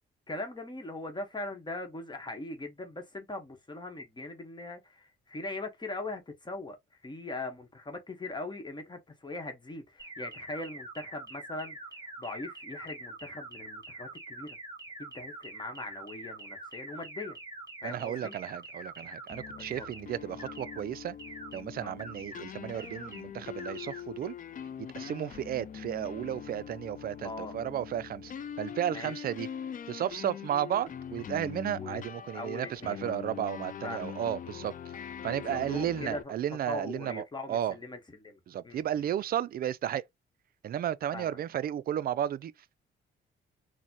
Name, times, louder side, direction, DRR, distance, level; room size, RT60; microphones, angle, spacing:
voice 1, 0.3-14.6 15.0-17.4 17.8-18.3 19.8-19.9 21.8-21.9 25.0-25.1 27.2-27.6 28.9-29.1 31.8-32.0 32.3-33.1 33.8-34.1 35.3-36.3 36.7-38.8 41.1-41.4, left 2 dB, 20° left, 1.1 m, -40 dB
sound 1, 10.0-20.0 20.4-20.8 21.2-21.6 22.0-22.4 22.8-23.2 23.6-24.0, right 2 dB, 15° right, 2.2 m, -45 dB
voice 2, 17.8-21.2 21.5-24.4 24.8-28.3 28.6-29.5 29.9-34.7 35.0-37.8 38.5-40.0 40.6-42.5, right 10 dB, 50° right, 0.4 m, -33 dB
sound 2, 19.3-36.2, left 8 dB, 40° left, 0.4 m, -43 dB
3.9 x 2.2 x 2.8 m
cardioid pair, 90°, 20 cm